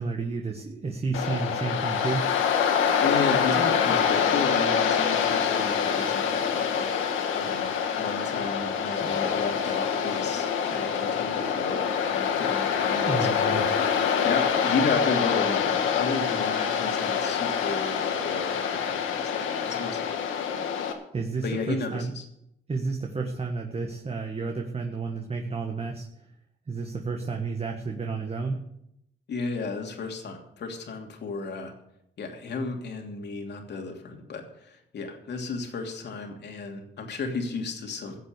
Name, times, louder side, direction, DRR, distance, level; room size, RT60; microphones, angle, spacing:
voice 1, 0.0-2.3 13.1-13.8 21.1-22.1 22.7-26.1 26.7-28.6, right 4 dB, 30° right, 2 dB, 1.6 m, -31 dB
Waves surf, 1.1-20.9, left 7 dB, 85° left, 1.8 m, -26 dB
voice 2, 3.0-20.0 21.4-22.2 29.3-31.7 32.2-38.2, left 4 dB, 60° left, 3 dB, 2.9 m, -33 dB
15.5 x 7.8 x 6.7 m, 0.79 s
cardioid pair, 90°, 20 cm